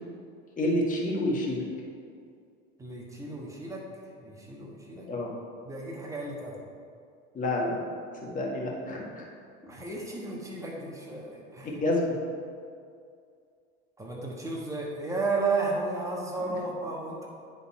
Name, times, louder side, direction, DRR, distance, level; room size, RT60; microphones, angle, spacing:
voice 1, 0.6-1.6 5.1-5.3 7.3-7.8 8.2-9.2 11.6-12.2, left 1 dB, 25° left, -3 dB, 1.7 m, -28 dB
voice 2, 2.8-3.8 4.2-5.1 5.6-6.6 9.6-11.7 14.0-17.3, right 3 dB, 10° right, -2 dB, 1.4 m, -33 dB
9.4 x 4.1 x 4.3 m, 2.3 s
supercardioid pair, 110°, 30 cm